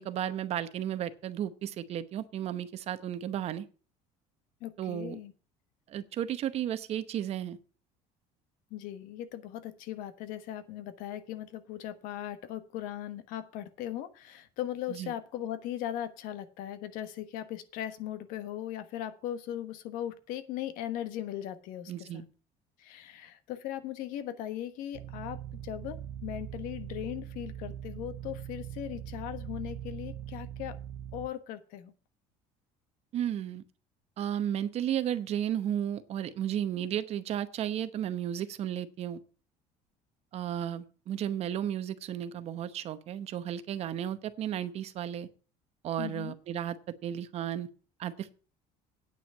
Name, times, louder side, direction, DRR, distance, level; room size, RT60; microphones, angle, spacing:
voice 1, 0.0-3.7 4.8-5.2 5.9-7.6 14.9-15.1 21.9-22.3 33.1-33.6 34.2-39.2 40.3-45.3 45.8-47.7 48.0-48.3, right 10 dB, 45° right, 13 dB, 0.9 m, -34 dB
voice 2, 4.6-5.3 8.7-22.3 22.8-30.8 31.1-31.9 46.0-46.4, left 12 dB, 75° left, 11 dB, 1.3 m, -38 dB
sound 1, 24.9-31.3, right 10 dB, 75° right, 0.9 m, -41 dB
9.3 x 5.8 x 7.9 m, 0.37 s
cardioid pair, 140°, 14 cm